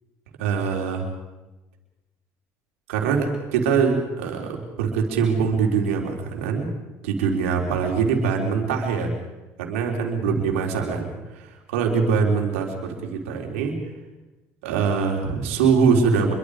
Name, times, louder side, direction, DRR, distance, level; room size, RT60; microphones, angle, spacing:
voice 1, 0.4-1.1 2.9-6.7 7.0-9.1 9.6-13.8 14.6-16.3, right 5 dB, 90° right, 2 dB, 4.0 m, -23 dB
27.0 x 23.0 x 5.1 m, 1.1 s
supercardioid pair, 75°, 7 cm